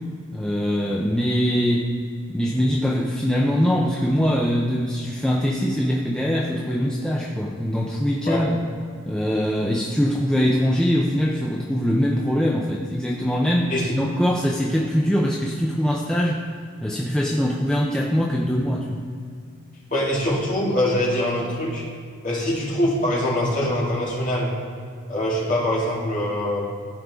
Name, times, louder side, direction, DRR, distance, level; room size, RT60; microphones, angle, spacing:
voice 1, 0.3-2.0 2.3-8.6 9.1-16.5 16.8-19.1, equal, 5° left, -3 dB, 0.5 m, -22 dB
voice 2, 19.9-21.8 22.2-24.5 25.1-26.7, left 1 dB, 35° left, -6 dB, 2.4 m, -23 dB
15.0 x 5.2 x 3.6 m, 2.2 s
head